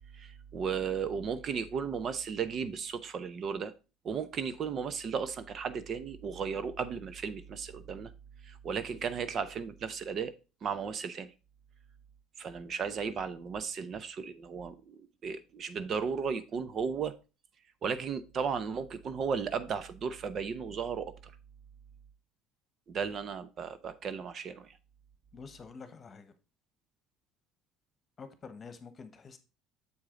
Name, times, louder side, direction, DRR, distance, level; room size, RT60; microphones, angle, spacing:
voice 1, 0.1-3.7 4.0-8.1 8.4-10.3 10.6-11.3 12.4-17.2 17.8-21.3 22.9-24.8, right 6 dB, 45° right, 0.7 m, -35 dB
voice 2, 25.3-26.3 28.2-29.4, left 5 dB, 35° left, 1.2 m, -48 dB
7.1 x 4.8 x 3.8 m
supercardioid pair, 90°, 0 cm